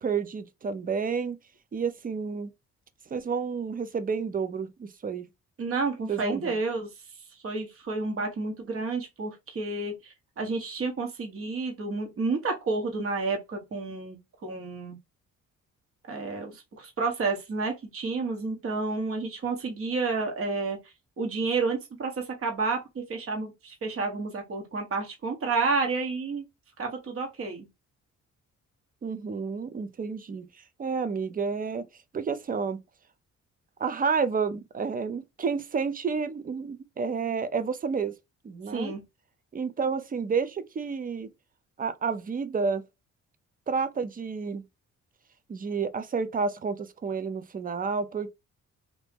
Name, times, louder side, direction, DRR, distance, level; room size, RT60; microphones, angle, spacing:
voice 1, 0.0-1.4 1.7-2.5 3.1-5.3 6.1-6.6 29.0-30.4 30.8-31.9 32.1-32.8 33.8-38.1 38.4-38.9 39.5-41.3 41.8-42.8 43.7-44.6 45.5-48.3, right 5 dB, 30° right, 0.5 m, -30 dB
voice 2, 5.6-6.9 7.4-14.2 14.4-15.0 16.1-20.8 21.2-26.4 26.8-27.7 38.7-39.0, right 3 dB, 45° right, 1.3 m, -30 dB
2.8 x 2.6 x 3.5 m
cardioid pair, 90°, 30 cm